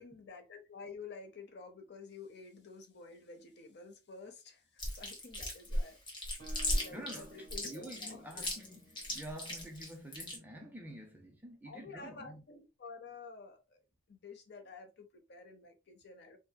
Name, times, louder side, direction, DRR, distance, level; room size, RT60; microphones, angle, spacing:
voice 1, 0.0-6.0 6.7-8.5 11.7-13.8 14.1-16.4, left 4 dB, 50° left, 0.6 m, -50 dB
Chewing mastication, 4.8-10.4, left 1 dB, 20° left, 0.8 m, -36 dB
Guitar, 6.4-10.1, right 3 dB, 50° right, 1.3 m, -57 dB
voice 2, 6.5-12.4, right 1 dB, 10° right, 0.4 m, -49 dB
3.4 x 2.7 x 2.2 m
head